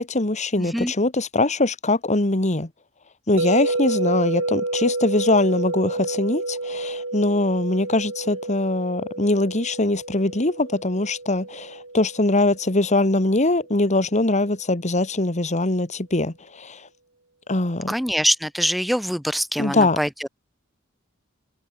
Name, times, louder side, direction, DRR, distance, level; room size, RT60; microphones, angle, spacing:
voice 1, 0.0-2.7 3.3-16.8 17.5-17.9 19.6-20.0, left 2 dB, 35° left, 1.9 m, -22 dB
voice 2, 0.6-0.9 17.9-20.3, equal, ahead, 0.6 m, -24 dB
sound 1, 3.4-13.5, right 2 dB, 65° right, 5.5 m, -30 dB
head